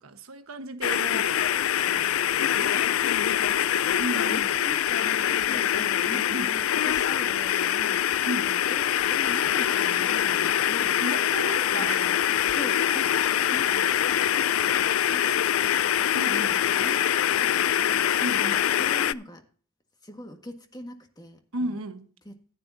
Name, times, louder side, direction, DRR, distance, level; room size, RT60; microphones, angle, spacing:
voice 1, 0.0-1.5 1.8-2.6 2.9-3.0 4.0-4.5 6.3-6.5 8.2-8.5 11.0-12.2 16.1-16.6 18.2-18.6 21.5-22.1, right 1 dB, 85° right, 1.2 m, -34 dB
sound 1, 0.8-19.1, left 10 dB, 70° left, 0.4 m, -24 dB
voice 2, 2.6-3.6 4.3-11.0 11.7-12.2 12.5-14.0 16.1-18.1 18.8-19.4 20.0-21.8 22.2-22.6, equal, 20° left, 1.6 m, -43 dB
14.5 x 9.7 x 2.7 m
head